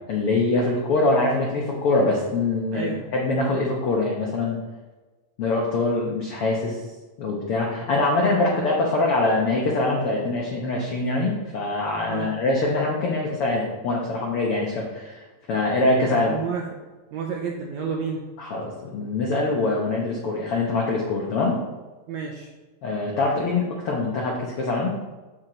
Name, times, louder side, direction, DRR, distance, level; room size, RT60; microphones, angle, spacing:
voice 1, 0.1-4.6 5.4-6.8 7.2-16.3 18.4-21.6 22.8-24.9, left 2 dB, 80° left, -2 dB, 1.2 m, -24 dB
voice 2, 2.7-3.1 8.2-8.7 12.1-12.3 16.1-16.7 17.1-18.2 22.1-22.5, right 6 dB, 80° right, 0 dB, 1.6 m, -31 dB
7.7 x 6.0 x 3.9 m, 1.2 s
omnidirectional pair, 3.9 m